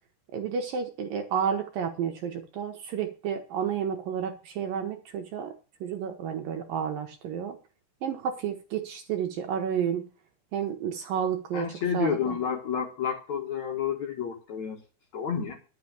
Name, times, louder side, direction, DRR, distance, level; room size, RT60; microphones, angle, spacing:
voice 1, 0.3-5.5 5.8-7.6 8.0-10.0 10.5-12.4, right 7 dB, 65° right, 5 dB, 2.5 m, -31 dB
voice 2, 11.5-14.8 15.1-15.6, left 8 dB, 55° left, 1 dB, 2.6 m, -30 dB
11.5 x 6.2 x 7.0 m, 0.34 s
omnidirectional pair, 4.8 m